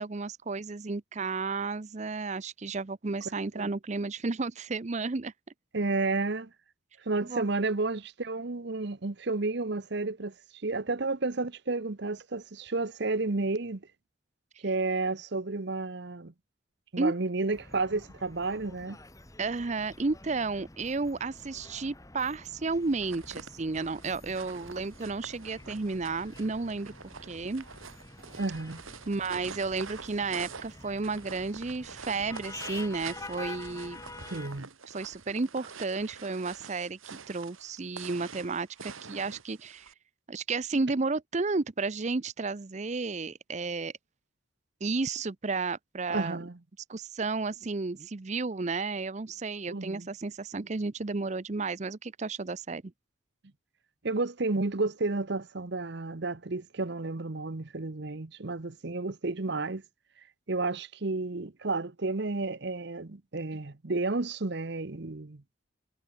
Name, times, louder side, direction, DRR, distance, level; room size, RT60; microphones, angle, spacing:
voice 1, 0.0-5.3 7.2-7.5 17.0-17.1 19.4-27.6 29.1-34.0 34.9-39.9 40.3-43.9 44.8-46.4 46.9-52.8, right 3 dB, 35° right, 0.6 m, -32 dB
voice 2, 5.7-6.5 7.1-10.3 10.6-13.9 14.6-16.3 16.9-19.0 28.4-28.8 34.3-34.7 46.1-46.6 49.7-50.1 54.0-59.8 60.5-65.4, right 3 dB, 55° right, 0.9 m, -31 dB
sound 1, 17.5-34.6, left 2 dB, 15° left, 1.7 m, -48 dB
sound 2, 22.9-39.9, right 5 dB, 85° right, 2.1 m, -47 dB
head